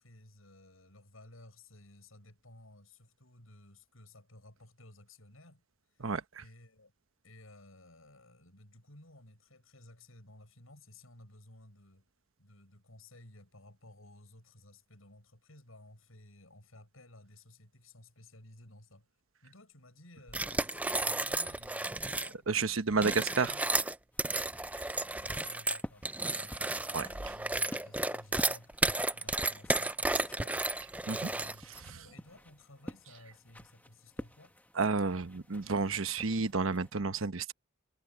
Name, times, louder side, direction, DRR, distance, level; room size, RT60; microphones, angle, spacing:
voice 1, 0.0-5.6 5.9-6.9 7.2-12.1 12.4-19.1 19.4-23.7 25.2-30.8 31.1-34.6, left 1 dB, 85° left, 7.8 m, -56 dB
voice 2, 6.0-6.4 22.5-23.5 26.9-27.1 31.1-31.2 34.8-37.5, right 4 dB, 75° right, 1.1 m, -30 dB
sound 1, 20.3-22.3 22.9-31.8, right 2 dB, 5° right, 0.4 m, -33 dB
sound 2, 24.1-36.9, equal, 10° left, 1.3 m, -50 dB
head